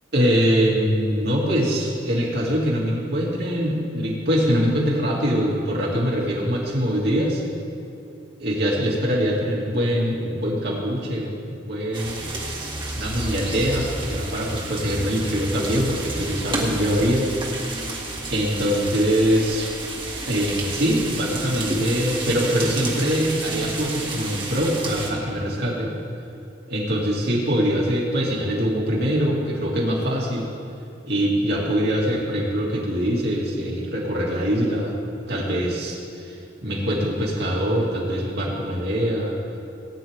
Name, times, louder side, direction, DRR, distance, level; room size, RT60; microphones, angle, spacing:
voice 1, 0.1-7.4 8.4-12.2 12.9-17.3 17.7-17.9 18.3-19.7 20.3-25.9 26.7-30.5 31.1-34.9 35.3-36.4 36.6-39.4, equal, 60° right, -4 dB, 2.7 m, -23 dB
sound 1, 11.9-25.1, right 2 dB, 25° right, 1.7 m, -30 dB
18.5 x 9.7 x 3.7 m, 2.7 s
head